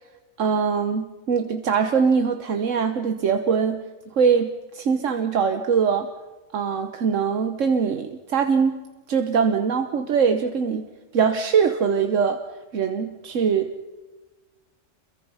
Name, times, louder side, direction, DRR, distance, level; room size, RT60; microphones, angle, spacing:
voice 1, 0.4-3.8 4.2-6.1 6.5-8.8 9.1-10.8 11.1-12.4 12.7-13.7, right 6 dB, 80° right, 7 dB, 1.4 m, -22 dB
28.0 x 23.0 x 5.6 m, 1.2 s
omnidirectional pair, 1.3 m